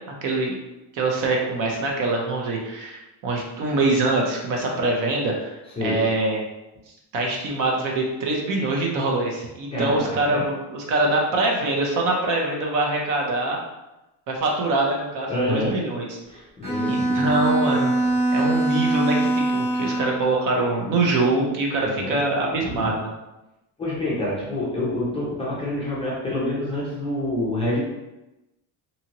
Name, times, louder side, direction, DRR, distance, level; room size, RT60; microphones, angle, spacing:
voice 1, 0.2-0.6 0.9-6.4 7.1-13.6 14.3-16.2 16.8-17.9 18.3-23.1, right 2 dB, 50° right, 0 dB, 0.6 m, -24 dB
voice 2, 9.7-10.4 15.3-15.8 16.3-18.1 21.8-22.2 22.6-22.9 23.8-27.8, left 1 dB, 15° left, -7 dB, 0.4 m, -27 dB
Bowed string instrument, 16.6-20.3, right 2 dB, 25° right, 0.9 m, -22 dB
2.7 x 2.7 x 2.8 m, 0.98 s
cardioid pair, 175°, 41 cm